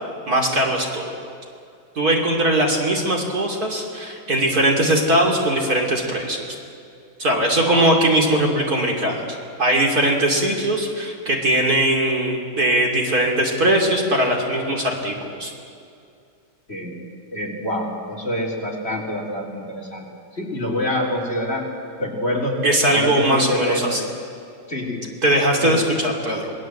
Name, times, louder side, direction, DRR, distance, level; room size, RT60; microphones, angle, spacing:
voice 1, 0.3-1.2 2.0-6.5 7.2-9.2 9.6-15.5 22.6-24.0 25.2-26.5, right 1 dB, 45° right, 1 dB, 3.3 m, -20 dB
voice 2, 17.3-21.7 22.0-24.0 24.7-25.2 25.6-25.7, left 1 dB, 30° left, 0 dB, 3.7 m, -26 dB
28.0 x 20.0 x 7.9 m, 2.4 s
omnidirectional pair, 2.2 m